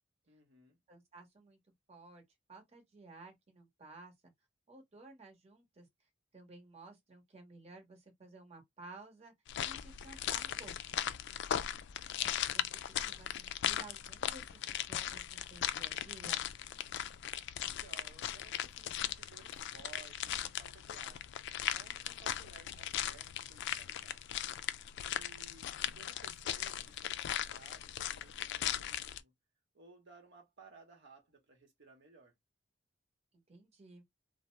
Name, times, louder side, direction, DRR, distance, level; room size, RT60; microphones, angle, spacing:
voice 1, 0.3-0.8 12.1-12.5 17.6-21.2 21.7-24.2 25.0-29.3 29.7-32.3, right 4 dB, 65° right, 0.9 m, -59 dB
voice 2, 0.9-1.6 1.9-2.2 2.5-4.1 4.7-5.9 6.3-9.3 9.6-11.0 12.5-12.6 12.9-16.5 33.5-34.0, right 3 dB, 35° right, 0.9 m, -54 dB
sound 1, 9.5-29.2, left 11 dB, 60° left, 0.3 m, -38 dB
2.7 x 2.0 x 3.0 m
head